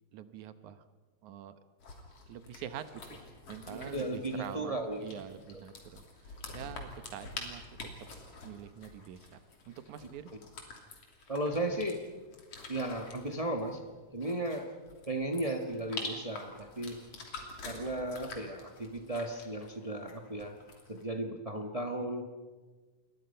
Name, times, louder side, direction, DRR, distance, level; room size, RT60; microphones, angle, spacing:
voice 1, 0.1-0.8 1.2-1.5 2.3-3.2 3.5-4.7 5.0-8.1 8.4-9.3 9.7-10.3, right 9 dB, 75° right, 11 dB, 2.4 m, -45 dB
sound 1, 1.8-21.0, left 3 dB, 50° left, 4.0 m, -47 dB
voice 2, 3.7-5.2 11.3-12.1 12.7-13.8 14.1-14.7 15.1-17.0 17.6-20.6 20.9-22.3, right 1 dB, 35° right, 4 dB, 0.5 m, -35 dB
28.5 x 22.0 x 5.7 m, 1.3 s
omnidirectional pair, 3.5 m